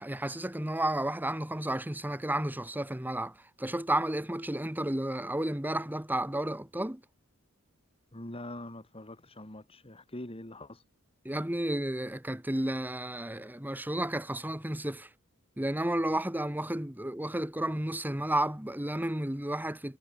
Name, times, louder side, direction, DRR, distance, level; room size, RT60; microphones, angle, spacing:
voice 1, 0.0-7.0 11.2-15.1 15.6-20.0, right 1 dB, 10° right, 1.4 m, -32 dB
voice 2, 8.1-10.8, left 1 dB, 25° left, 2.9 m, -43 dB
head